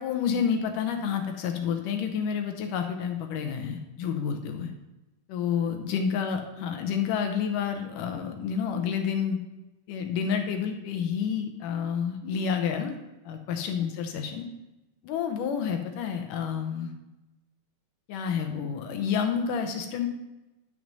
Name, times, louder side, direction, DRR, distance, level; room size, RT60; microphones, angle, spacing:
voice 1, 0.0-4.7 5.3-9.4 9.9-13.0 13.3-14.5 15.0-16.9 18.1-20.1, left 7 dB, 75° left, 5 dB, 2.2 m, -29 dB
10.5 x 6.5 x 5.3 m, 1.0 s
omnidirectional pair, 4.1 m